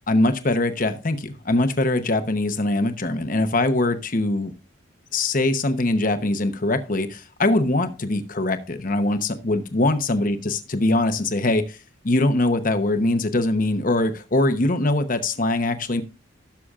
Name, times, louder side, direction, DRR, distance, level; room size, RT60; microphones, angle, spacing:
voice 1, 0.1-4.5 5.1-11.8 12.0-16.0, left 2 dB, 45° left, 9 dB, 0.9 m, -22 dB
16.0 x 6.9 x 2.4 m, 0.32 s
head